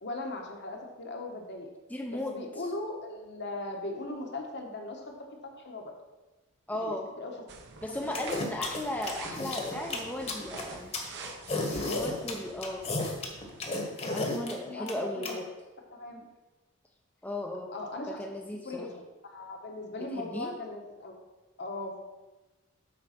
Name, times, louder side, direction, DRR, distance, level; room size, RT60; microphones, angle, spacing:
voice 1, 0.0-1.7 2.1-5.1 5.5-5.9 6.7-7.3 11.7-12.1 14.0-15.4 15.9-16.2 17.7-18.2 18.6-21.2 21.6-22.0, left 2 dB, 55° left, 1 dB, 1.3 m, -39 dB
voice 2, 1.9-2.7 6.7-7.1 7.8-10.9 11.7-12.9 14.1-15.5 17.2-17.7 18.1-18.9 20.0-20.5, left 1 dB, 10° left, 1 dB, 0.6 m, -36 dB
sound 1, 7.5-13.7, right 4 dB, 55° right, 0.9 m, -47 dB
sound 2, 8.1-15.3, left 2 dB, 30° left, 1.2 m, -33 dB
7.8 x 4.8 x 5.9 m, 1.1 s
head